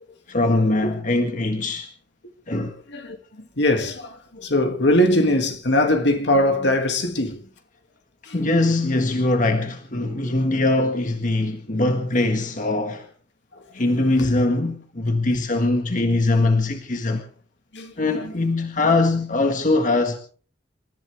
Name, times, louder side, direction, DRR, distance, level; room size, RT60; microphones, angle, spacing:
voice 1, 0.3-1.9 2.5-2.7 8.3-13.1 13.7-17.2 18.0-20.2, left 2 dB, 45° left, 1.7 m, -22 dB
voice 2, 2.9-7.4 8.3-8.4 10.2-10.3 13.5-13.6 14.2-14.3 17.7-18.4, left 1 dB, 65° left, 2.4 m, -22 dB
28.5 x 14.5 x 3.5 m
head